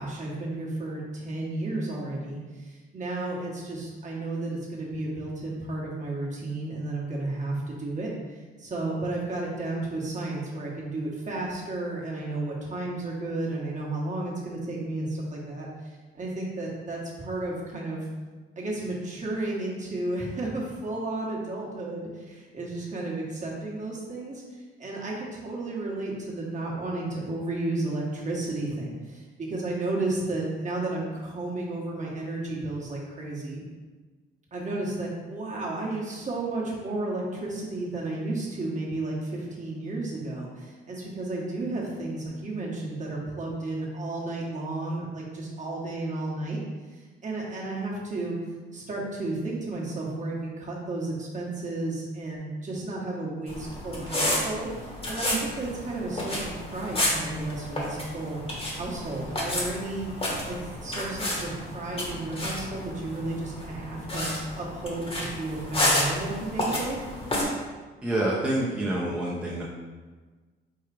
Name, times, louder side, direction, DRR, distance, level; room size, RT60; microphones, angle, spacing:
voice 1, 0.0-18.1 18.6-33.6 34.5-46.6 46.9-48.4 48.7-54.7 55.1-58.4 58.8-60.1 60.5-64.3 64.6-67.0, right 2 dB, 40° right, -3 dB, 1.3 m, -33 dB
sound 1, 53.5-67.4, left 1 dB, 30° left, 1.2 m, -31 dB
voice 2, 68.0-69.6, right 1 dB, 5° right, -6 dB, 0.7 m, -27 dB
4.8 x 2.4 x 4.8 m, 1.3 s
cardioid pair, 90°, 20 cm